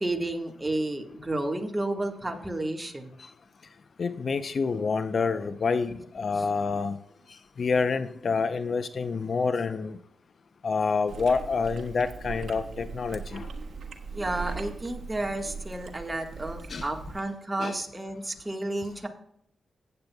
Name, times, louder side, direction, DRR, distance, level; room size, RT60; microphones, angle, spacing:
voice 1, 0.0-3.2 6.3-6.4 14.1-19.1, right 2 dB, 20° right, 4 dB, 1.5 m, -31 dB
voice 2, 4.0-7.0 7.6-10.0 10.6-13.5 16.7-16.9 17.6-17.8, left 4 dB, 50° left, 11 dB, 0.6 m, -27 dB
Chewing mastication, 11.1-17.2, right 5 dB, 65° right, 1.4 m, -40 dB
16.0 x 8.7 x 2.2 m, 0.72 s
cardioid pair, 90°, 0 cm